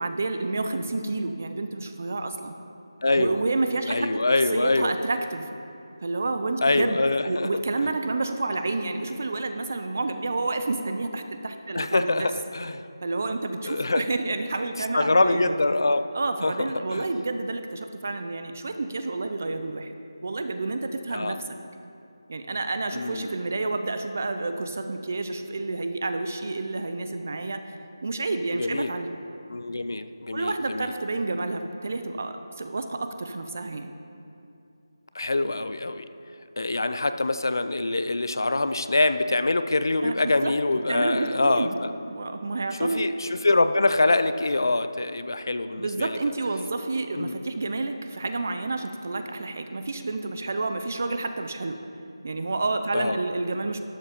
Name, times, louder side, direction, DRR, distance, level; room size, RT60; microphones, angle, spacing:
voice 1, 0.0-2.5 3.2-4.2 4.5-5.5 6.0-12.3 13.0-15.5 16.1-19.9 20.2-21.4 22.3-29.2 30.3-33.9 40.0-40.5 40.9-41.8 42.1-43.0 45.8-51.8 52.2-53.8, right 3 dB, 30° right, 8 dB, 0.4 m, -29 dB
voice 2, 3.0-3.4 3.9-5.0 6.6-7.5 11.7-12.8 13.6-14.1 14.9-16.0 16.4-17.1 21.1-21.4 22.9-23.3 28.5-29.0 29.5-30.9 35.1-36.1 36.6-41.9 42.8-46.2 47.2-47.3 52.9-53.2, left 2 dB, 55° left, 11 dB, 0.5 m, -24 dB
12.0 x 7.3 x 5.1 m, 2.7 s
figure-of-eight pair, 180°, 2 cm